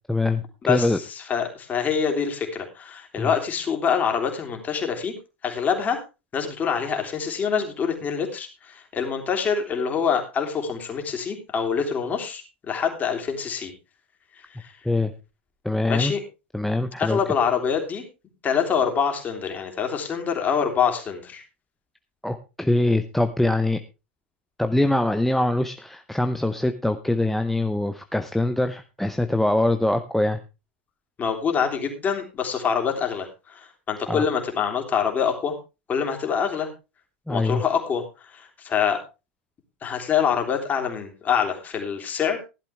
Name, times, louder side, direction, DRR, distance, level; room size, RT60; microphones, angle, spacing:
voice 1, 0.1-0.4 0.7-1.0 3.2-3.3 14.8-15.1 15.6-16.1 16.5-17.2 22.2-23.8 24.6-30.4 34.1-34.2 37.3-37.6, left 1 dB, 5° left, 8 dB, 0.7 m, -23 dB
voice 2, 0.7-5.1 5.4-6.0 6.3-13.7 14.6-14.7 15.8-16.2 17.0-18.0 18.4-21.4 31.2-35.5 35.9-36.7 37.3-39.0 39.8-42.4, left 7 dB, 25° left, 3 dB, 3.3 m, -25 dB
15.0 x 11.5 x 3.4 m, 0.28 s
figure-of-eight pair, 85°, 6 cm